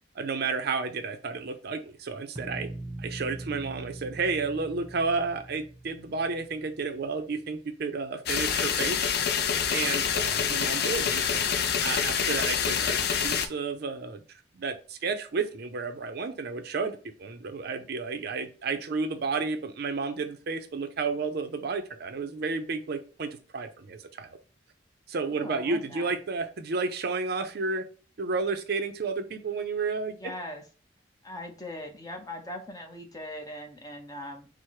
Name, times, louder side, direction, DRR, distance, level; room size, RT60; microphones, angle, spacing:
voice 1, 0.2-2.7 3.0-9.1 9.7-11.4 11.8-24.4 25.1-27.8 28.2-30.3, right 4 dB, 55° right, 8 dB, 0.5 m, -32 dB
sound 1, 2.4-7.3, right 1 dB, 20° right, 0.8 m, -42 dB
sound 2, 8.3-13.5, left 7 dB, 55° left, 0.4 m, -26 dB
voice 2, 25.3-26.2 30.1-30.6 31.2-34.5, left 1 dB, 20° left, 4 dB, 0.7 m, -40 dB
4.4 x 2.0 x 4.6 m, 0.38 s
head